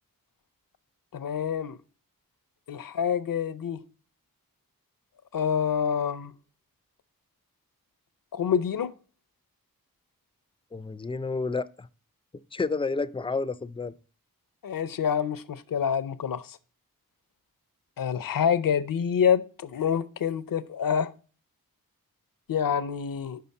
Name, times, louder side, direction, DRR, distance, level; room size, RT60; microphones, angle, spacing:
voice 1, 1.1-1.8 2.7-3.8 5.3-6.3 8.3-8.9 14.6-16.6 18.0-21.1 22.5-23.4, left 7 dB, 65° left, 0.6 m, -27 dB
voice 2, 10.7-11.9 12.5-13.9, left 4 dB, 15° left, 0.4 m, -30 dB
5.6 x 5.2 x 5.2 m
cardioid pair, 45°, 36 cm